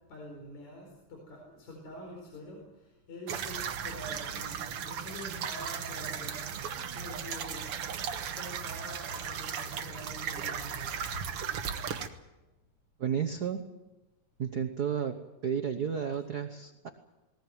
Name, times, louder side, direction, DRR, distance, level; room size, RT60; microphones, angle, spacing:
voice 1, 0.1-7.7 8.3-11.1, left 1 dB, 65° left, 1 dB, 5.5 m, -46 dB
sound 1, 3.3-12.1, right 7 dB, 55° right, 1.9 m, -36 dB
voice 2, 13.0-13.6 14.4-15.2 15.4-16.9, right 7 dB, 90° right, 7 dB, 0.8 m, -32 dB
20.0 x 20.0 x 9.2 m, 1.1 s
omnidirectional pair, 3.5 m